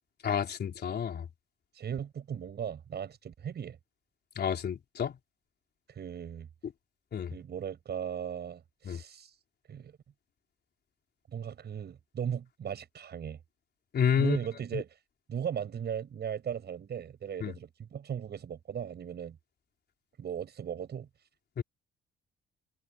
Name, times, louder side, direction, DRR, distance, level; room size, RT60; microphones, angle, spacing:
voice 1, 0.2-1.3 4.4-5.2 7.1-7.4 8.9-9.0 13.9-14.4 14.7-14.8 17.4-17.5 21.6-21.7, left 8 dB, 55° left, 3.7 m, -30 dB
voice 2, 1.7-3.8 5.9-6.5 7.3-9.4 9.7-9.9 11.3-13.4 14.1-15.0 15.3-19.4 20.2-21.1, right 8 dB, 55° right, 6.6 m, -37 dB
cardioid pair, 90°, 20 cm